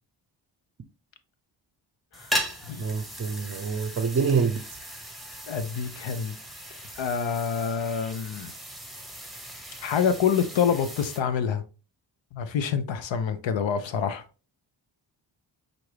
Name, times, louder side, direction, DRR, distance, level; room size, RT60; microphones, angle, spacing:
sound 1, 2.1-11.2, equal, ahead, 0.9 m, -37 dB
voice 1, 2.8-4.6, right 5 dB, 30° right, 0.6 m, -26 dB
voice 2, 5.5-6.3 7.0-8.5 9.8-11.6 12.3-14.2, left 7 dB, 70° left, 0.7 m, -27 dB
5.8 x 2.6 x 3.3 m
cardioid pair, 55°, 47 cm